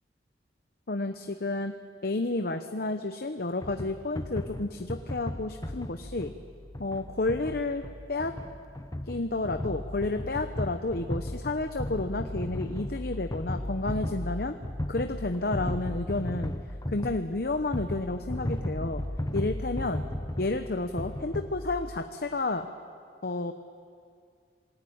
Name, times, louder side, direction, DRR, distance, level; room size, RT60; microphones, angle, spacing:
voice 1, 0.9-1.7 2.0-6.3 6.8-8.3 9.1-14.5 14.9-16.5 16.9-19.0 19.3-20.0 20.4-22.7 23.2-23.5, left 2 dB, 55° left, 7 dB, 0.9 m, -31 dB
sound 1, 3.6-22.0, left 1 dB, 20° left, 0.9 m, -35 dB
27.5 x 20.5 x 8.7 m, 2.3 s
head